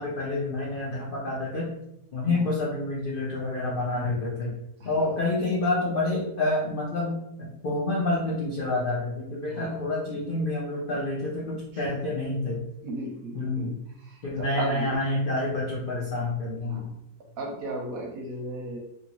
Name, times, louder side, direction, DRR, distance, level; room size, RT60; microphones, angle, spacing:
voice 1, 0.0-1.7 2.1-4.5 4.8-7.2 7.6-12.6 13.3-13.7 14.2-16.9, left 2 dB, 75° left, -4 dB, 0.5 m, -28 dB
voice 2, 9.5-9.9 11.7-12.0 12.8-14.9 16.6-17.0 17.4-18.8, right 2 dB, 70° right, 1 dB, 1.0 m, -36 dB
2.7 x 2.7 x 2.9 m, 0.80 s
omnidirectional pair, 1.8 m